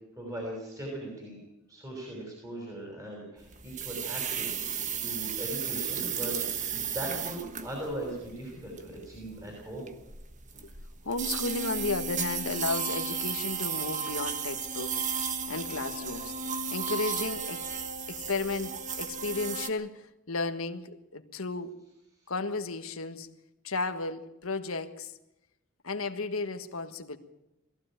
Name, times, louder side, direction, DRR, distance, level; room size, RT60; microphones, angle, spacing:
voice 1, 0.1-1.4 1.7-6.6 6.9-9.9, right 1 dB, 15° right, -1 dB, 6.2 m, -39 dB
sound 1, 3.4-19.7, right 6 dB, 35° right, 1.4 m, -34 dB
voice 2, 11.0-17.6 18.1-21.7 22.3-23.3 23.6-25.1 25.8-27.2, left 3 dB, 90° left, 8 dB, 1.6 m, -34 dB
21.0 x 15.5 x 9.0 m, 0.90 s
head